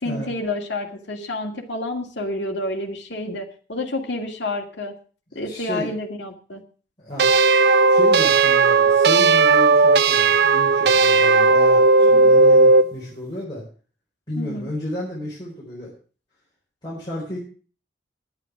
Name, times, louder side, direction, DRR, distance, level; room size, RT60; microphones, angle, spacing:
voice 1, 0.0-4.9 5.3-6.6 12.0-12.4 14.4-14.7, left 2 dB, 70° left, 1 dB, 2.2 m, -29 dB
voice 2, 5.3-5.9 7.0-7.3 7.7-13.6 14.3-15.9 16.8-17.4, equal, 25° left, -7 dB, 4.2 m, -32 dB
sound 1, 7.2-12.9, right 3 dB, 60° right, 0.5 m, -15 dB
10.5 x 9.2 x 6.2 m, 0.39 s
head